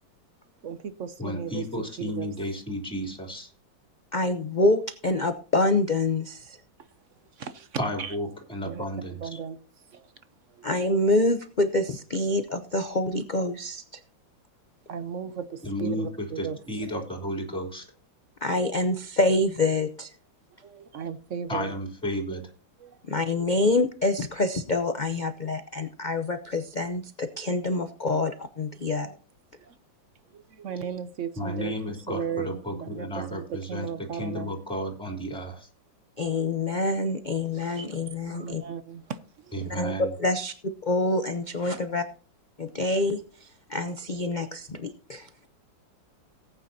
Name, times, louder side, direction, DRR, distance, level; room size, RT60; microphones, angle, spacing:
voice 1, 0.6-2.3 7.3-8.2 8.6-9.6 9.9-10.1 10.5-10.7 14.9-16.6 20.6-21.7 22.8-23.0 28.1-28.2 29.6-29.7 30.3-34.5 37.8-37.9 38.3-39.6, right 7 dB, 60° right, 12 dB, 0.8 m, -36 dB
voice 2, 1.2-3.5 7.8-9.4 15.6-16.1 16.4-17.8 21.5-22.4 31.4-33.9 34.1-35.7 39.5-40.1, equal, 5° left, 2 dB, 3.2 m, -33 dB
voice 3, 4.1-6.6 10.6-14.0 18.4-20.1 23.1-29.2 36.2-38.6 39.6-40.5 40.8-42.0 42.6-45.5, left 2 dB, 85° left, 9 dB, 0.4 m, -26 dB
18.5 x 9.1 x 2.7 m, 0.39 s
omnidirectional pair, 2.0 m